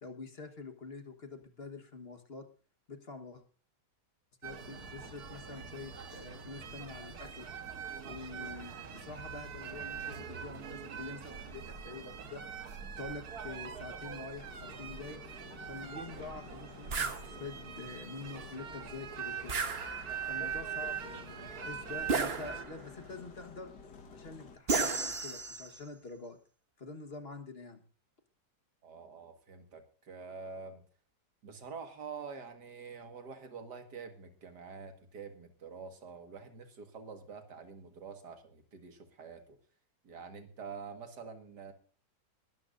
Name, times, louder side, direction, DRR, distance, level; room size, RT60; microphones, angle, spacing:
voice 1, 0.0-2.5 2.9-3.4 4.4-7.5 8.0-12.4 12.9-15.2 15.7-19.6 20.2-23.7 24.1-26.4 26.8-27.8, left 4 dB, 40° left, 7 dB, 1.4 m, -46 dB
sound 1, 4.4-22.7, right 7 dB, 65° right, 1.7 m, -43 dB
sound 2, 14.4-24.6, left 5 dB, 85° left, 2.0 m, -53 dB
sound 3, 16.9-17.2 19.5-20.3 22.1-22.9 24.7-25.8, right 4 dB, 40° right, 1.3 m, -33 dB
voice 2, 28.8-30.8 31.4-39.6 40.0-41.7, right 5 dB, 80° right, 7 dB, 2.3 m, -47 dB
21.0 x 13.0 x 2.5 m, 0.38 s
omnidirectional pair, 1.8 m